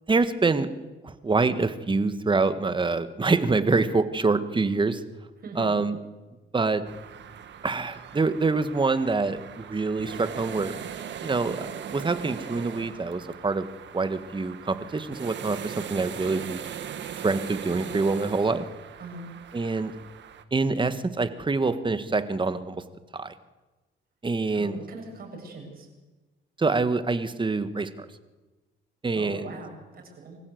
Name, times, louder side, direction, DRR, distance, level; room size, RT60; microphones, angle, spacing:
voice 1, 0.1-0.7 1.0-5.0 5.6-6.0 6.5-6.8 7.6-10.8 11.2-13.7 13.9-16.6 17.2-18.6 19.5-19.9 20.5-22.8 23.1-23.3 24.2-24.8 26.6-28.1 29.0-29.6, right 3 dB, 25° right, 11 dB, 1.6 m, -25 dB
voice 2, 5.4-5.7 19.0-19.3 24.5-25.9 29.1-30.4, right 2 dB, 50° right, 1 dB, 7.3 m, -41 dB
sound 1, 6.8-20.4, right 8 dB, 65° right, 1.6 m, -40 dB
24.0 x 15.5 x 8.0 m, 1.2 s
cardioid pair, 90°, 20 cm